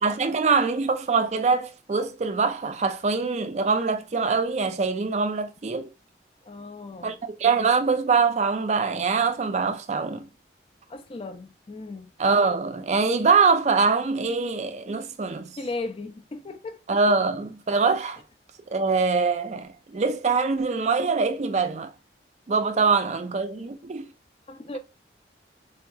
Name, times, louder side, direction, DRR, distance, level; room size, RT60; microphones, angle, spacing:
voice 1, 0.0-5.9 7.0-10.3 12.2-15.6 16.9-18.2 18.7-21.9 22.5-24.1, right 4 dB, 40° right, 0.4 m, -23 dB
voice 2, 6.4-7.2 10.9-12.1 15.6-16.8 22.8-22.9 24.5-24.8, left 3 dB, 30° left, 0.4 m, -36 dB
3.8 x 2.6 x 2.3 m
head